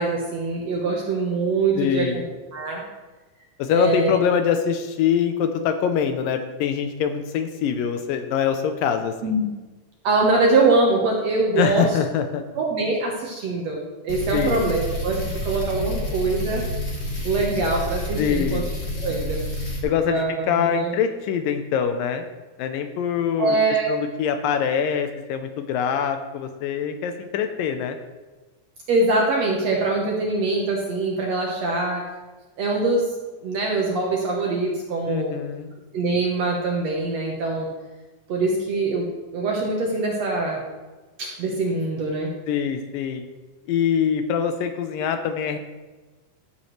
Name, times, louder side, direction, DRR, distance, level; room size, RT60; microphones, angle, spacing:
voice 1, 0.0-2.2 2.5-2.8 3.7-4.1 9.2-9.5 10.0-11.9 12.6-16.6 17.2-18.6 19.0-19.4 20.1-20.9 23.4-23.9 28.9-32.0 32.6-33.1 33.4-35.3 35.9-37.7 38.3-40.6 41.2-42.3, right 3 dB, 65° right, -1 dB, 1.8 m, -23 dB
voice 2, 1.8-2.2 3.6-9.3 11.6-12.4 14.3-14.6 18.2-18.7 19.8-22.3 22.6-23.6 23.9-28.0 35.1-35.7 42.5-43.2 43.7-45.6, left 7 dB, 80° left, 7 dB, 2.2 m, -24 dB
sound 1, 14.1-19.8, left 1 dB, 45° left, 0.8 m, -29 dB
13.5 x 7.2 x 3.2 m, 1.2 s
omnidirectional pair, 4.2 m